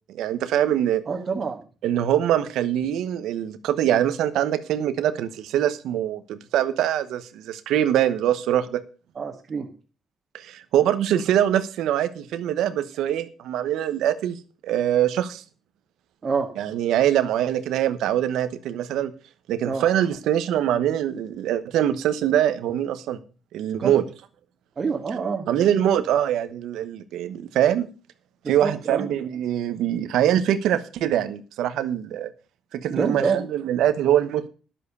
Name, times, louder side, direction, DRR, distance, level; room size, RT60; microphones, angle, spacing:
voice 1, 0.1-1.0 1.8-8.8 10.3-14.4 14.6-15.4 16.6-19.1 19.5-23.2 23.5-24.0 25.5-27.9 28.5-32.3 32.7-34.5, right 11 dB, 85° right, 1.1 m, -23 dB
voice 2, 1.1-1.6 9.2-9.7 16.2-16.5 19.7-19.9 23.8-24.0 24.8-25.5 28.4-29.1 32.9-33.4, right 5 dB, 40° right, 1.8 m, -26 dB
11.0 x 7.5 x 6.8 m
cardioid pair, 90°, 0 cm